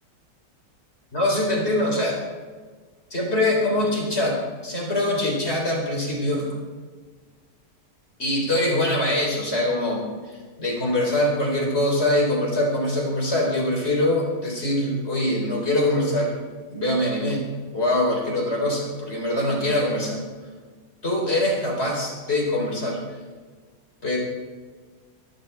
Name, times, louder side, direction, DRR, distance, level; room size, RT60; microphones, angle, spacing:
voice 1, 1.1-2.2 3.1-6.5 8.2-16.4 16.7-20.2 21.0-23.0 24.0-24.2, left 1 dB, 35° left, -1 dB, 4.4 m, -23 dB
25.0 x 14.0 x 3.6 m, 1.5 s
omnidirectional pair, 1.9 m